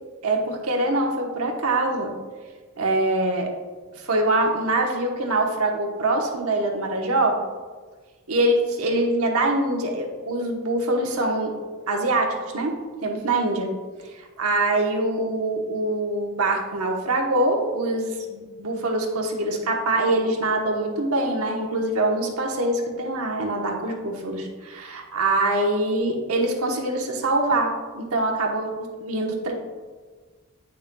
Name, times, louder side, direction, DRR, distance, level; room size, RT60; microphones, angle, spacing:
voice 1, 0.2-2.1 2.8-3.5 3.9-7.4 8.3-11.5 11.9-12.8 13.0-13.7 14.1-28.7 29.0-29.5, right 2 dB, 70° right, 1 dB, 1.0 m, -24 dB
8.7 x 6.4 x 2.3 m, 1.4 s
head